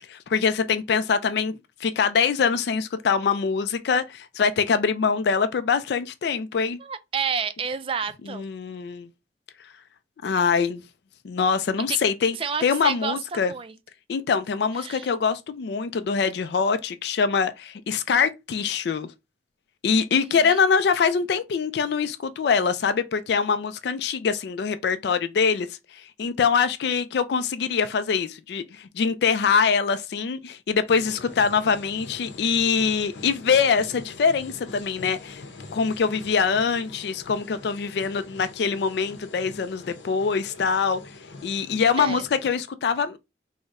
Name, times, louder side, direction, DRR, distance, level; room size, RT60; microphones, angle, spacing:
voice 1, 0.1-6.8 8.3-9.1 10.2-10.8 11.2-12.4 12.6-13.5 14.1-19.1 19.8-25.7 25.9-35.4 35.7-41.0 41.4-43.2, left 6 dB, 65° left, 0.3 m, -24 dB
voice 2, 6.8-8.4 11.9-12.0 12.4-13.7 14.8-15.1 20.1-20.6 42.0-42.2, right 6 dB, 30° right, 0.3 m, -30 dB
sound 1, 30.9-42.5, left 3 dB, 85° left, 0.7 m, -44 dB
3.6 x 2.1 x 4.0 m
head